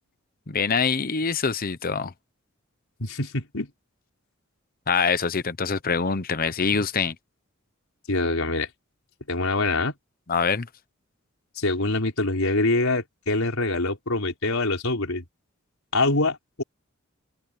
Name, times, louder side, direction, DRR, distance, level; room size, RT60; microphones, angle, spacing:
voice 1, 0.5-2.1 4.9-7.1 10.3-10.7, left 5 dB, 45° left, 0.9 m, -24 dB
voice 2, 3.0-3.7 8.1-8.7 9.3-9.9 11.6-15.2 15.9-16.6, left 2 dB, 90° left, 4.4 m, -24 dB
head